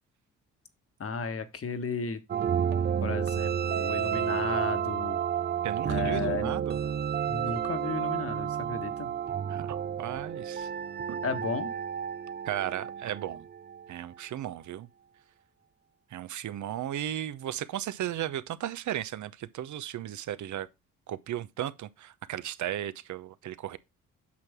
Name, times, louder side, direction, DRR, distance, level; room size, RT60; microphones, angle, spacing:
voice 1, 1.0-2.2 3.0-5.2 5.9-6.5 7.3-9.1 11.2-11.7, left 5 dB, 45° left, 1.5 m, -34 dB
sound 1, 2.3-14.0, right 8 dB, 30° right, 0.4 m, -31 dB
voice 2, 5.6-6.8 9.5-10.7 11.1-11.2 12.4-13.5 13.9-14.9 16.1-20.7 21.1-23.8, right 11 dB, 65° right, 0.8 m, -35 dB
8.6 x 6.0 x 3.6 m
supercardioid pair, 60°, 32 cm